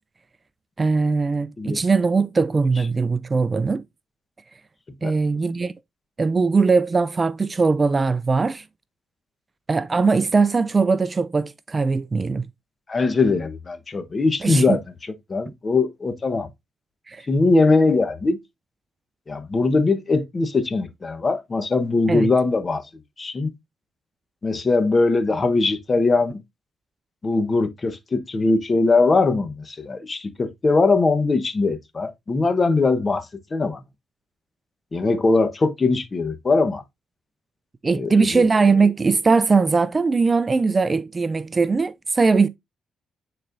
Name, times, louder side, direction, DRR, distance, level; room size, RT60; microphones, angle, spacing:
voice 1, 0.8-3.8 5.0-5.7 6.2-8.6 9.7-12.5 14.4-14.8 17.1-17.3 22.1-22.3 37.8-42.5, right 4 dB, 30° right, 0.4 m, -20 dB
voice 2, 12.9-14.8 15.3-16.5 17.3-18.4 19.3-22.8 23.2-23.5 24.4-26.4 27.2-33.3 33.5-33.8 34.9-36.8 37.8-38.4, left 3 dB, 30° left, 1.0 m, -21 dB
8.9 x 4.3 x 2.5 m
cardioid pair, 90°, 0 cm